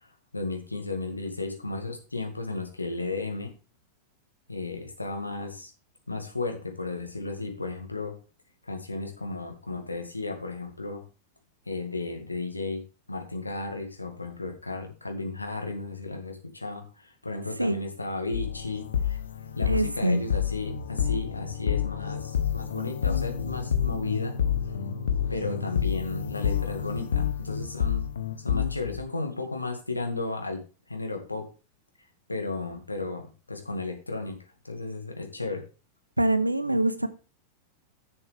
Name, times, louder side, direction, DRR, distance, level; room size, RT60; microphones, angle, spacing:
voice 1, 0.0-3.5 4.5-5.7 6.1-8.2 8.6-11.0 11.7-12.8 13.1-19.2 19.6-24.3 25.3-28.1 28.4-30.6 30.9-31.5 32.3-33.2 33.5-34.4 34.6-35.6, left 3 dB, 80° left, 2.0 m, -34 dB
sound 1, 18.3-29.0, left 8 dB, 65° left, 1.1 m, -29 dB
voice 2, 19.7-20.2 36.2-37.1, right 1 dB, 85° right, 0.8 m, -24 dB
10.5 x 7.0 x 3.4 m
figure-of-eight pair, 90°, 0 cm